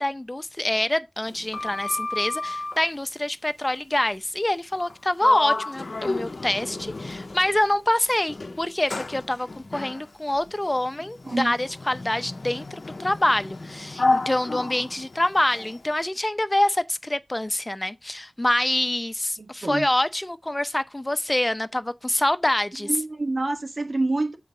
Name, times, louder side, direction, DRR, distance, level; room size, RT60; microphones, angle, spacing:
voice 1, 0.0-22.9, left 1 dB, 30° left, 0.7 m, -25 dB
Sliding door, 1.3-2.9 4.7-4.9 5.2-7.7 8.3-15.8, left 2 dB, 75° left, 0.6 m, -31 dB
voice 2, 11.3-11.6 19.4-19.9 22.8-24.4, right 2 dB, 65° right, 1.3 m, -27 dB
7.8 x 4.7 x 3.9 m
wide cardioid pair, 55°, 0 cm